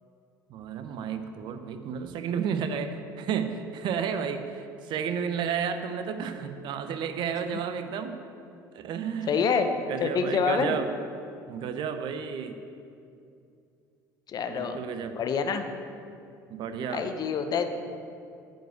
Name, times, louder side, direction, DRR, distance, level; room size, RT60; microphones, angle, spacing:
voice 1, 0.5-8.2 8.7-9.4 9.9-10.9 11.5-12.6 14.5-15.2 16.5-17.1, right 7 dB, 50° right, 8 dB, 0.8 m, -32 dB
voice 2, 9.3-9.7 10.0-10.8 14.3-14.8 15.1-15.6 16.9-17.7, left 6 dB, 40° left, 7 dB, 0.9 m, -26 dB
8.7 x 5.3 x 7.9 m, 2.5 s
figure-of-eight pair, 65°, 10 cm